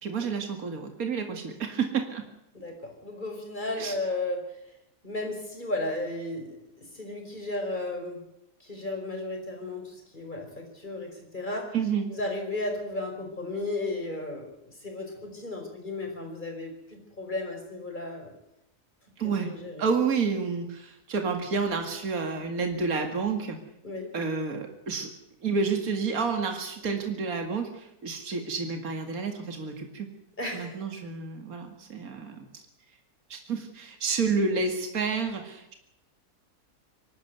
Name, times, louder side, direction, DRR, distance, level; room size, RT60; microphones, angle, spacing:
voice 1, 0.0-2.3 3.8-3.9 11.7-12.1 19.2-19.5 19.8-23.6 24.1-25.1 25.4-30.1 30.5-32.5 33.3-35.7, right 5 dB, 65° right, 5 dB, 2.6 m, -30 dB
voice 2, 2.5-4.6 5.0-8.2 8.6-11.8 12.1-18.3 19.2-19.9 23.8-24.1 30.4-31.1, left 2 dB, 30° left, 2 dB, 5.4 m, -34 dB
23.0 x 13.0 x 9.5 m, 0.82 s
omnidirectional pair, 1.7 m